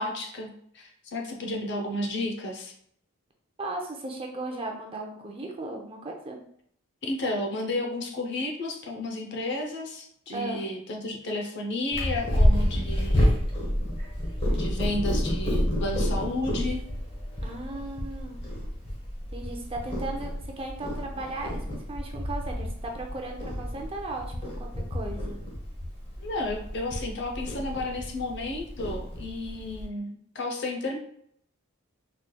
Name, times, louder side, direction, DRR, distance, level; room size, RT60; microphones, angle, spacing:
voice 1, 0.0-2.7 7.0-13.4 14.5-16.8 26.2-31.0, left 2 dB, 55° left, 2 dB, 0.6 m, -32 dB
voice 2, 3.6-6.4 10.3-10.6 17.4-18.4 19.3-25.4, right 2 dB, 25° right, 2 dB, 0.5 m, -36 dB
Purr, 11.9-29.8, equal, 25° left, 1.0 m, -29 dB
4.1 x 3.2 x 2.2 m, 0.67 s
head